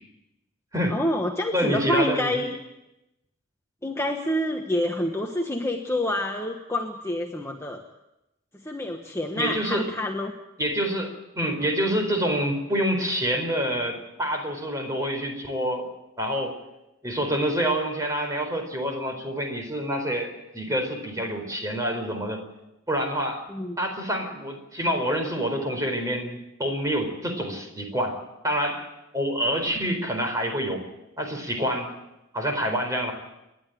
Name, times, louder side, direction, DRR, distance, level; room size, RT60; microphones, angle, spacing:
voice 1, 0.9-2.6 3.8-7.8 8.6-10.3 23.5-23.8, left 1 dB, 15° left, 2 dB, 1.2 m, -27 dB
voice 2, 1.5-2.4 9.3-9.9 10.6-15.9 16.2-16.6 17.0-22.4 22.9-23.4 23.8-28.9 29.1-30.8 31.2-31.9 32.3-33.1, equal, 15° right, 4 dB, 4.3 m, -27 dB
28.0 x 11.0 x 9.2 m, 0.92 s
head